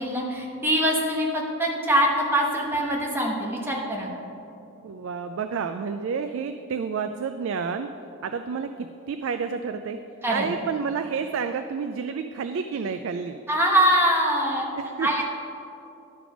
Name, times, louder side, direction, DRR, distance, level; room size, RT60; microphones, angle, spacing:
voice 1, 0.0-4.1 10.2-10.5 13.5-14.7 15.0-15.2, right 1 dB, 10° right, -2 dB, 1.0 m, -23 dB
voice 2, 4.8-7.9 8.2-10.0 10.3-13.4 14.8-15.1, right 6 dB, 60° right, 8 dB, 0.3 m, -30 dB
11.5 x 5.1 x 5.0 m, 2.8 s
head